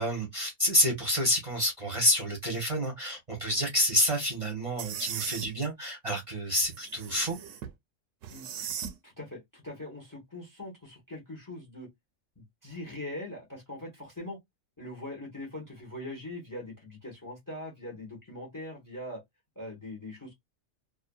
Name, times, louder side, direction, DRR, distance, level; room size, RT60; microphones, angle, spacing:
voice 1, 0.0-7.4, left 1 dB, 30° right, 0.8 m, -28 dB
sound 1, 4.8-5.5 6.6-7.7 8.2-8.9, right 8 dB, 75° right, 0.9 m, -38 dB
voice 2, 9.0-11.9 12.4-14.4 14.8-19.2 19.6-20.4, left 1 dB, 20° left, 0.8 m, -41 dB
2.7 x 2.5 x 2.3 m
omnidirectional pair, 1.4 m